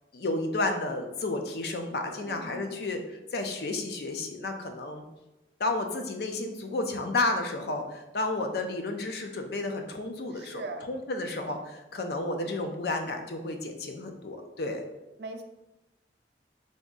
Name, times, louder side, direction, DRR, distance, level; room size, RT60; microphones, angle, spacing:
voice 1, 0.1-3.0 3.3-5.1 5.6-14.8, left 2 dB, 60° left, 4 dB, 0.5 m, -32 dB
voice 2, 2.0-2.9 10.3-10.9 15.2-15.4, right 3 dB, 65° right, 6 dB, 0.4 m, -41 dB
3.5 x 2.6 x 3.8 m, 0.96 s
head